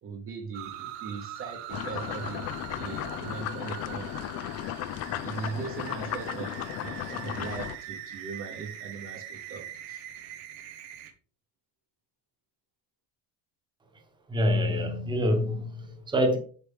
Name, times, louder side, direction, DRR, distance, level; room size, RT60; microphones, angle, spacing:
voice 1, 0.0-2.5 2.8-4.2 5.2-6.6 6.8-10.0, right 5 dB, 30° right, 1.1 m, -39 dB
sound 1, 0.5-11.1, right 11 dB, 90° right, 1.6 m, -42 dB
sound 2, 1.7-7.8, left 12 dB, 40° left, 0.5 m, -35 dB
voice 2, 14.3-16.4, left 1 dB, 10° right, 1.2 m, -26 dB
8.4 x 6.2 x 3.6 m
cardioid pair, 170°, 42 cm